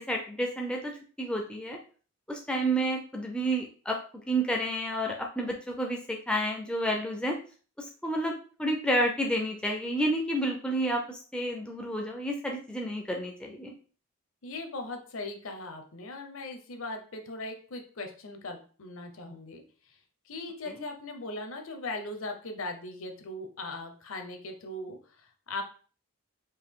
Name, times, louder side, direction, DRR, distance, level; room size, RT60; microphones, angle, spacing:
voice 1, 0.0-1.8 2.3-4.0 4.3-7.4 7.8-13.7 20.7-20.8, right 1 dB, 5° left, 1 dB, 0.4 m, -30 dB
voice 2, 14.4-19.6 20.3-25.6, left 2 dB, 65° left, 5 dB, 0.8 m, -39 dB
4.5 x 2.6 x 3.6 m, 0.40 s
head